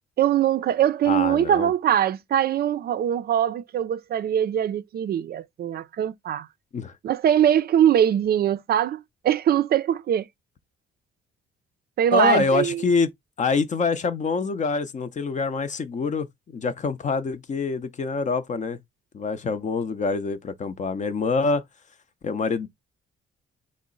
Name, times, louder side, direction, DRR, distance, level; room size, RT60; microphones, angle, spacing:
voice 1, 0.2-6.5 7.0-10.3 12.0-12.8, right 10 dB, 50° right, 0.4 m, -22 dB
voice 2, 1.1-1.7 6.7-6.9 12.1-13.1 13.4-18.8 19.1-21.6 22.2-22.7, left 4 dB, 40° left, 0.6 m, -25 dB
3.7 x 2.0 x 3.7 m
cardioid pair, 90°, 20 cm